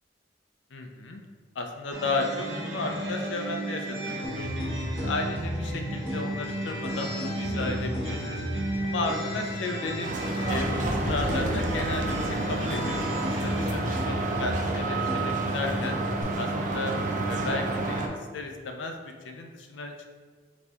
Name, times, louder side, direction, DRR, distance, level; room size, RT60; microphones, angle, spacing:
voice 1, 0.7-1.2 1.6-8.2 8.8-10.1 10.5-12.2 12.5-16.0 16.3-16.9 17.2-18.9 19.2-20.2, left 3 dB, 80° left, 3 dB, 0.5 m, -34 dB
sound 1, 1.9-13.7, right 1 dB, 85° right, 0.8 m, -34 dB
sound 2, 4.2-16.2, left 1 dB, 10° left, 1.2 m, -35 dB
sound 3, 10.0-18.1, right 2 dB, 40° right, 0.4 m, -29 dB
3.9 x 2.7 x 3.5 m, 1.5 s
head